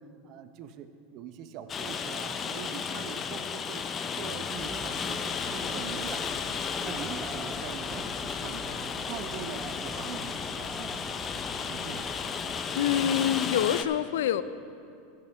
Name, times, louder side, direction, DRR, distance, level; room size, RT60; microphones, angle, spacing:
voice 1, 0.0-6.4 6.7-12.1, right 8 dB, 50° right, 9 dB, 0.7 m, -43 dB
Rain, 1.7-13.8, left 6 dB, 30° left, 0.6 m, -34 dB
sound 1, 4.5-12.6, equal, 5° right, 0.8 m, -44 dB
voice 2, 12.7-14.4, left 10 dB, 80° left, 14 dB, 0.4 m, -26 dB
14.5 x 9.4 x 3.5 m, 2.5 s
supercardioid pair, 115°, 0 cm